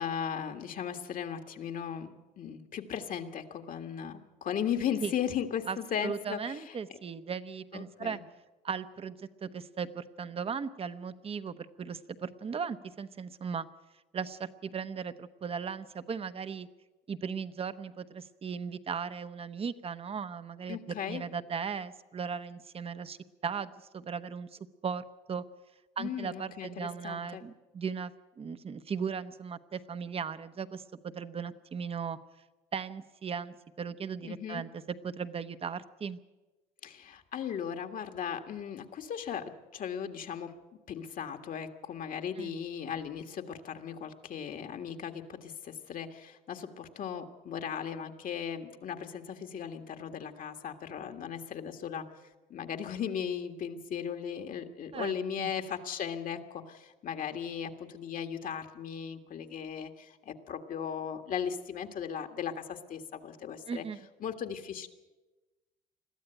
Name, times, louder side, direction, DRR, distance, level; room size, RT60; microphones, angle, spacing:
voice 1, 0.0-6.7 7.7-8.2 20.7-21.2 26.0-27.4 34.2-34.6 36.8-40.5 40.9-52.1 52.5-63.8 64.2-64.9, left 8 dB, 55° left, 7 dB, 1.8 m, -37 dB
voice 2, 6.0-8.2 8.6-13.7 14.1-16.7 17.1-20.8 21.1-23.2 23.4-25.4 26.0-32.2 32.7-36.2 42.4-42.5 54.9-55.1 55.4-55.5 63.7-64.1, right 6 dB, 35° right, 12 dB, 1.0 m, -37 dB
21.5 x 14.0 x 9.1 m, 1.1 s
cardioid pair, 110°, 17 cm